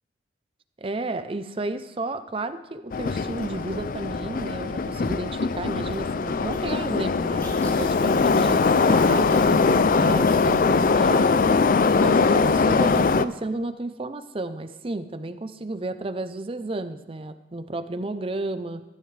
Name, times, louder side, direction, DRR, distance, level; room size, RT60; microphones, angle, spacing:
voice 1, 0.8-11.3 12.0-18.8, right 2 dB, 30° right, 11 dB, 0.5 m, -32 dB
Subway metro underground, 2.9-13.3, left 4 dB, 45° left, 0.4 m, -21 dB
sound 1, 6.5-6.8 7.4-7.9 8.4-8.7 9.2-9.7 10.3-11.4 11.8-12.5, left 1 dB, 10° left, 1.8 m, -41 dB
15.5 x 14.5 x 3.3 m, 1.0 s
head